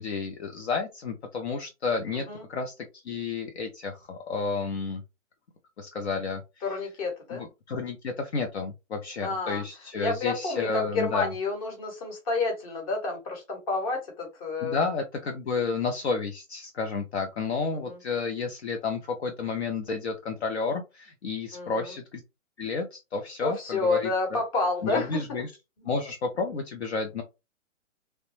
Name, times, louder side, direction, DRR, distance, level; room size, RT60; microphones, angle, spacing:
voice 1, 0.0-2.7 3.0-5.0 5.8-6.4 7.3-11.3 14.6-22.2 22.6-24.4 24.8-25.5 25.8-27.2, left 4 dB, 55° left, 5 dB, 0.6 m, -31 dB
voice 2, 2.1-2.4 6.6-7.4 9.2-9.6 10.0-14.8 17.8-18.0 21.5-21.9 23.4-25.4, left 3 dB, 25° left, 1 dB, 1.0 m, -29 dB
3.1 x 2.1 x 3.1 m, 0.25 s
hypercardioid pair, 160°, 40 cm